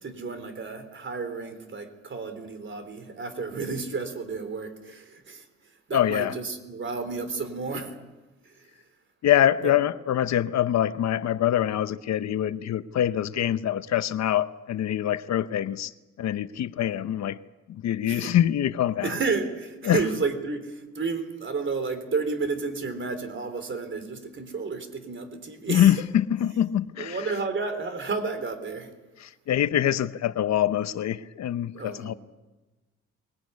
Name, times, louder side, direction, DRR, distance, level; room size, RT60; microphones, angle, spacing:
voice 1, 0.0-5.5 5.9-7.9 8.6-8.7 9.6-9.7 18.1-18.3 19.0-25.9 27.0-28.9 31.7-32.2, right 4 dB, 40° right, 3.7 m, -31 dB
voice 2, 5.9-6.3 9.2-15.9 16.2-17.4 17.7-19.1 19.8-20.0 25.7-27.2 29.2-32.1, left 11 dB, 60° left, 0.9 m, -24 dB
21.5 x 18.0 x 9.6 m
cardioid pair, 90°, 30 cm